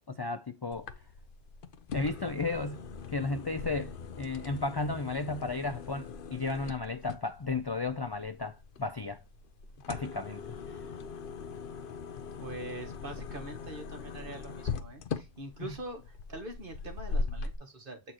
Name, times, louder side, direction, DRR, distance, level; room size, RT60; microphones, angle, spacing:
voice 1, 0.1-0.9 1.9-2.8 3.1-9.2 9.9-10.8, left 3 dB, 40° left, 0.3 m, -34 dB
sound 1, 0.7-17.6, left 4 dB, 60° left, 0.8 m, -40 dB
voice 2, 12.4-18.1, right 2 dB, 55° right, 1.8 m, -43 dB
7.8 x 4.2 x 2.9 m
omnidirectional pair, 1.0 m